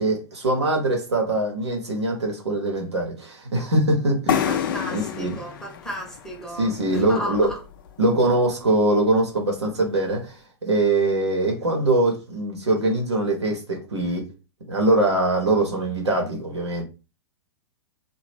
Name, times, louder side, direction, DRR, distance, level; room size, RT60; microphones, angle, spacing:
voice 1, 0.0-4.6 4.9-5.4 6.5-7.5 8.0-10.3 10.6-14.3 14.7-16.8, right 2 dB, 70° right, 0.9 m, -22 dB
sound 1, 4.3-7.9, left 8 dB, 50° left, 0.4 m, -29 dB
voice 2, 4.5-7.6, equal, 5° left, 0.9 m, -34 dB
2.8 x 2.2 x 3.2 m
figure-of-eight pair, 105°, 15 cm